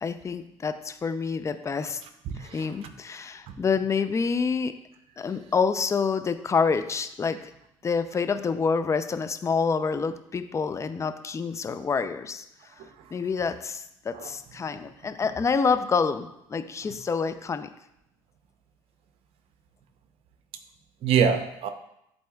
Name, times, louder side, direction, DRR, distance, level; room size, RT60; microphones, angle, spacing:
voice 1, 0.0-2.0 2.4-4.8 5.2-7.5 7.8-12.4 13.1-17.7, left 5 dB, 25° left, 10 dB, 0.5 m, -27 dB
voice 2, 2.2-2.9 3.5-3.6 12.8-13.1 14.1-14.3 16.9-17.0 21.0-21.7, right 7 dB, 60° right, 8 dB, 0.7 m, -26 dB
10.5 x 4.1 x 2.4 m, 0.80 s
supercardioid pair, 80°, 11 cm